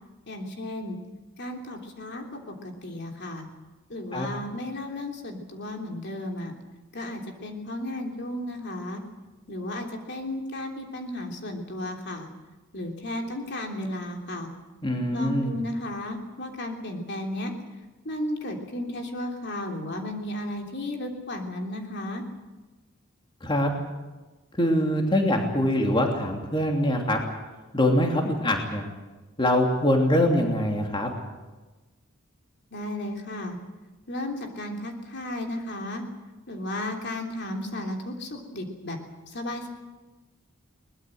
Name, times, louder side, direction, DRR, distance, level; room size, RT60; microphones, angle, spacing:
voice 1, 0.3-1.0 1.4-2.2 2.6-3.5 3.9-6.5 6.9-9.0 9.5-12.3 12.7-14.5 15.1-17.5 18.0-22.2 32.7-33.6 34.1-36.0 36.5-39.0 39.3-39.7, left 1 dB, 60° left, 2 dB, 3.3 m, -34 dB
voice 2, 14.8-15.5 23.4-23.7 24.6-27.2 27.7-28.8 29.4-31.1, left 1 dB, 25° left, 2 dB, 2.9 m, -23 dB
22.5 x 20.0 x 7.9 m, 1.2 s
head